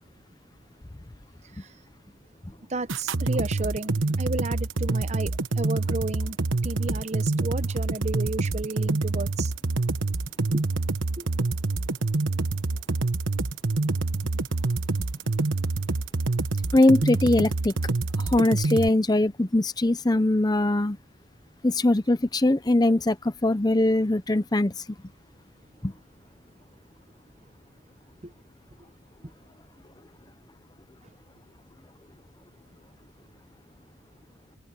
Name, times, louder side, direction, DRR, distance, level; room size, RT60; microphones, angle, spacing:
voice 1, 2.7-6.4 6.6-9.5 10.0-10.1 10.5-10.6 11.2-11.3 28.2-28.3, right 2 dB, 35° right, 0.9 m, -33 dB
sound 1, 2.9-18.9, right 3 dB, 75° right, 1.2 m, -26 dB
voice 2, 16.7-17.7 18.3-21.0 21.6-24.7 25.8-25.9, left 1 dB, 20° left, 0.6 m, -21 dB
head